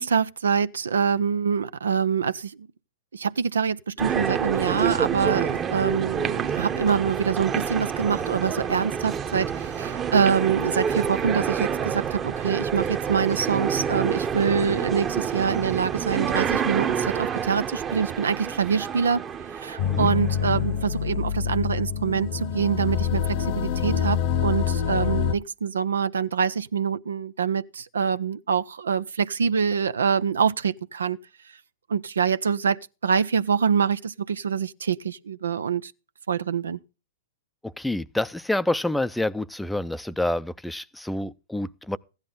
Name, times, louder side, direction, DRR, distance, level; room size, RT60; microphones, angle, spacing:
voice 1, 0.0-2.7 3.1-19.2 19.6-31.2 31.9-35.9 36.3-36.8, right 6 dB, 90° right, 0.6 m, -25 dB
sound 1, 4.0-20.6, right 7 dB, 25° right, 0.9 m, -28 dB
sound 2, 19.8-25.3, left 9 dB, 50° left, 1.0 m, -26 dB
voice 2, 37.6-42.0, left 1 dB, 5° left, 0.5 m, -28 dB
15.0 x 10.5 x 3.9 m
hypercardioid pair, 125°, 0 cm